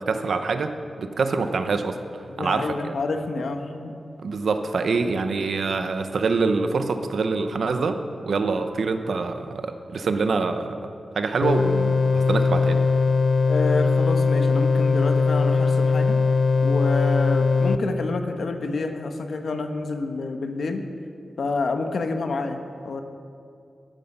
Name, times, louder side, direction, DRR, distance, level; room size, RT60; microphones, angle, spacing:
voice 1, 0.0-2.0 2.4-2.9 4.2-8.0 8.3-12.8, right 4 dB, 70° right, 8 dB, 0.8 m, -25 dB
voice 2, 2.3-3.9 13.5-16.2 16.6-20.8 21.4-23.0, left 3 dB, 65° left, 7 dB, 1.0 m, -28 dB
sound 1, 11.4-17.8, left 4 dB, 45° left, 0.6 m, -20 dB
13.0 x 13.0 x 5.5 m, 2.5 s
wide cardioid pair, 165°, 0 cm